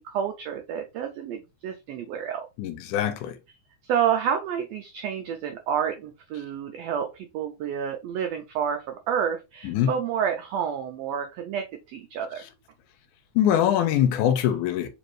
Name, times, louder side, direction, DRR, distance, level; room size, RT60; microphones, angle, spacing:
voice 1, 0.0-2.5 3.8-12.4, right 8 dB, 85° right, 1.4 m, -29 dB
voice 2, 2.6-3.4 9.6-9.9 13.4-14.9, left 10 dB, 85° left, 2.1 m, -23 dB
4.9 x 2.6 x 3.1 m
omnidirectional pair, 3.5 m